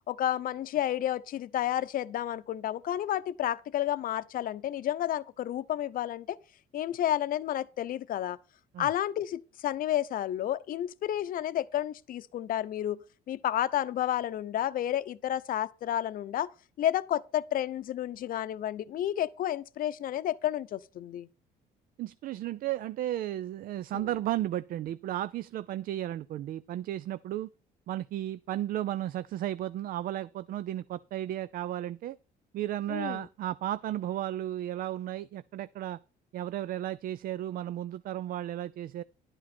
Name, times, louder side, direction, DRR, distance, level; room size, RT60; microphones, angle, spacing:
voice 1, 0.1-6.4 6.7-8.4 8.8-13.0 13.3-16.5 16.8-21.3 23.9-24.0 32.9-33.3, left 12 dB, 55° left, 0.7 m, -31 dB
voice 2, 22.0-27.5 27.9-32.2 32.5-36.0 36.3-39.0, right 13 dB, 60° right, 0.4 m, -34 dB
11.5 x 8.7 x 4.3 m
cardioid pair, 110°, 17 cm